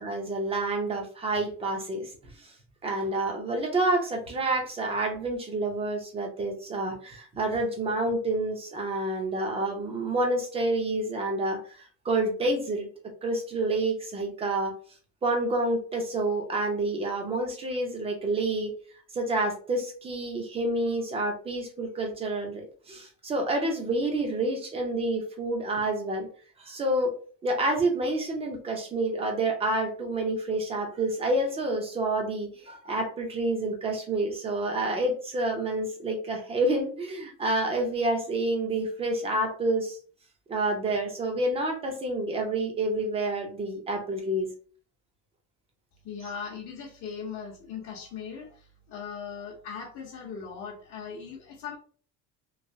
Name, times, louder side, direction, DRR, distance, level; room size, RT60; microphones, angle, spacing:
voice 1, 0.0-2.5 2.8-12.9 13.2-14.7 15.2-18.7 19.1-26.3 26.6-27.1 27.4-40.0 40.5-44.5, right 2 dB, 15° right, 3 dB, 0.6 m, -28 dB
voice 2, 46.0-51.8, left 6 dB, 45° left, -4 dB, 0.8 m, -39 dB
3.2 x 2.8 x 2.6 m, 0.42 s
cardioid pair, 180°, 33 cm